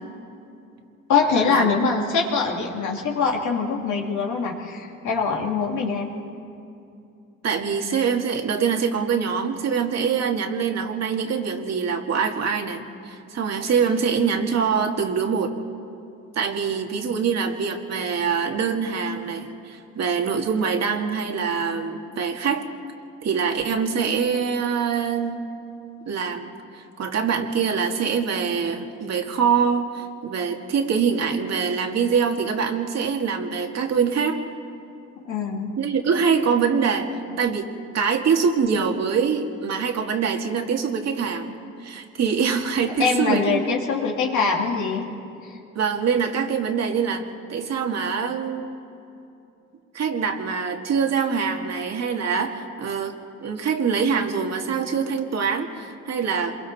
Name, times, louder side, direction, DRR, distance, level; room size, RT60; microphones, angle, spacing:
voice 1, 1.1-6.1 16.9-17.1 35.2-35.7 43.0-45.1 45.4-45.6, left 5 dB, 75° left, 0 dB, 2.8 m, -23 dB
voice 2, 7.4-15.5 16.4-22.6 23.2-25.4 26.1-34.4 35.8-37.1 37.4-37.7 37.9-43.6 45.8-48.7 49.9-56.6, right 6 dB, 60° right, 3 dB, 2.0 m, -24 dB
27.0 x 22.5 x 4.2 m, 2.6 s
cardioid pair, 90°, 30 cm